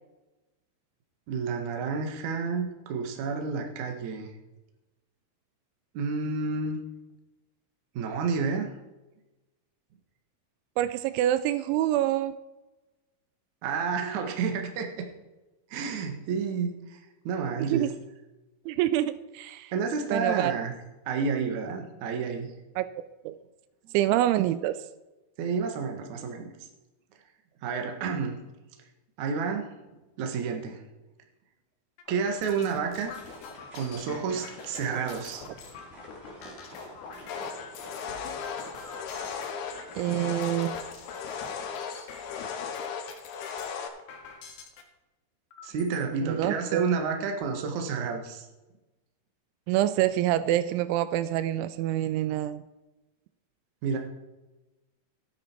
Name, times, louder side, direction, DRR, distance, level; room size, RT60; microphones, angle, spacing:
voice 1, 1.3-4.3 5.9-6.8 7.9-8.7 13.6-15.1 15.7-17.9 19.7-20.7 21.1-22.5 25.4-26.5 27.6-28.4 29.2-29.7 30.2-30.8 32.1-33.1 33.7-35.4 45.6-48.5 53.8-54.0, right 5 dB, 60° right, 3 dB, 2.1 m, -30 dB
voice 2, 10.8-12.4 17.6-17.9 18.7-19.7 20.1-20.5 22.8-22.9 23.3-23.4 23.9-24.8 40.0-40.8 46.2-46.8 49.7-52.6, right 13 dB, 85° right, 14 dB, 2.9 m, -26 dB
sound 1, 32.0-44.8 45.5-46.0 46.6-46.7 47.0-47.6, left 5 dB, 65° left, 3.1 m, -45 dB
sound 2, 33.1-41.6, equal, 15° right, 2.6 m, -50 dB
sound 3, 37.3-43.9, left 6 dB, 85° left, 3.7 m, -37 dB
13.5 x 10.0 x 4.5 m, 1.1 s
omnidirectional pair, 5.4 m